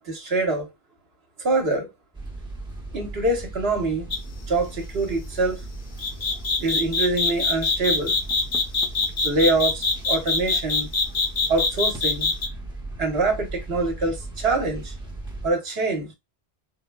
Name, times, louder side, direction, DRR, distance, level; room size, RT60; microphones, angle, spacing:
voice 1, 0.1-0.7 1.4-1.9 2.9-4.1 4.5-5.6 6.6-8.2 9.2-10.9 11.5-12.3 13.0-14.9 15.4-16.1, right 2 dB, 70° right, 1.2 m, -24 dB
sound 1, 2.1-15.5, right 2 dB, 5° right, 0.7 m, -37 dB
sound 2, 4.1-4.3 6.0-12.5, left 4 dB, 70° left, 1.3 m, -23 dB
4.4 x 2.2 x 2.2 m
omnidirectional pair, 1.1 m